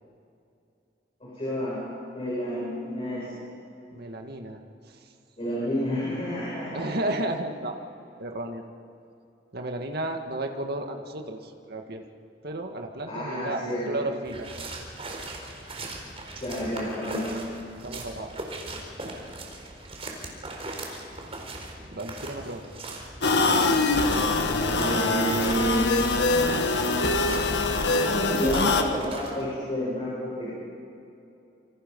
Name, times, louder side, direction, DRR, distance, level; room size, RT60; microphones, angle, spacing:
voice 1, 1.2-1.8 2.1-3.4 5.4-6.9 13.1-13.9 16.4-17.3 24.1-25.8 28.0-30.7, equal, 35° left, -7 dB, 7.9 m, -30 dB
voice 2, 3.9-5.1 6.7-7.8 8.2-8.6 9.5-12.0 12.4-14.5 16.6-16.7 17.8-18.3 21.9-22.6, right 1 dB, 60° right, 3 dB, 2.1 m, -33 dB
sound 1, 14.2-29.4, right 2 dB, 35° right, 4.3 m, -40 dB
sound 2, 23.2-28.8, left 3 dB, 65° left, 1.7 m, -23 dB
27.5 x 26.0 x 5.5 m, 2.7 s
head